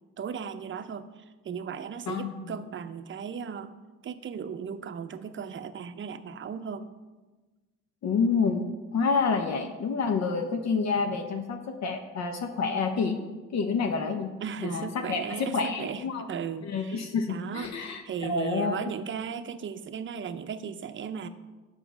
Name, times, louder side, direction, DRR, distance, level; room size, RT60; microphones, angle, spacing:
voice 1, 0.2-3.7 4.0-6.9 14.4-21.3, right 7 dB, 40° right, 10 dB, 0.6 m, -36 dB
voice 2, 8.0-13.2 13.5-14.3 14.6-16.3 16.6-18.9, left 5 dB, 60° left, 5 dB, 0.8 m, -28 dB
7.1 x 5.6 x 6.1 m, 1.2 s
cardioid pair, 90°, 30 cm